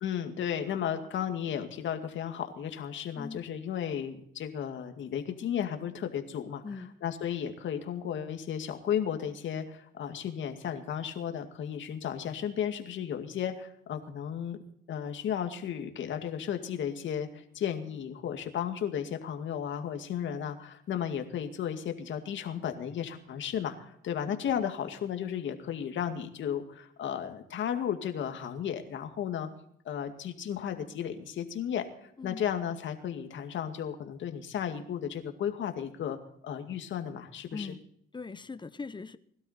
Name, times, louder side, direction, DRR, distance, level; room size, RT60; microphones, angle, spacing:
voice 1, 0.0-6.6 7.0-14.6 14.9-29.5 29.9-36.2 36.4-37.8, left 9 dB, 70° left, 7 dB, 2.2 m, -34 dB
voice 2, 3.1-3.5 6.6-6.9 24.3-24.4 32.2-32.4 37.5-37.8 38.1-39.2, left 4 dB, 25° left, 14 dB, 1.0 m, -40 dB
21.0 x 12.0 x 4.4 m, 0.68 s
cardioid pair, 90°, 20 cm